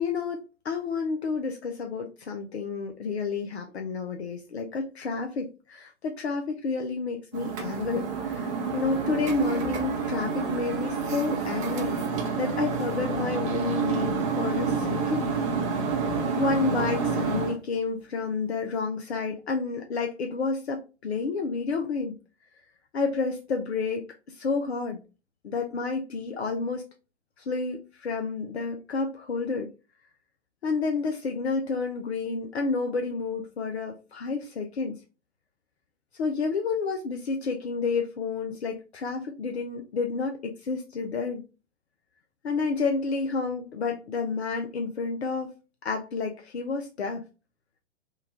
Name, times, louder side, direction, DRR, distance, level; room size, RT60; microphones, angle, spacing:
voice 1, 0.0-12.0 12.3-15.3 16.3-22.1 22.9-25.0 25.4-26.8 27.4-29.7 30.6-35.0 36.2-41.4 42.4-45.5 45.8-47.2, left 4 dB, 65° left, 3 dB, 0.6 m, -30 dB
sound 1, 7.3-17.6, right 5 dB, 25° right, 0.6 m, -28 dB
3.1 x 2.3 x 3.5 m, 0.31 s
figure-of-eight pair, 120°, 36 cm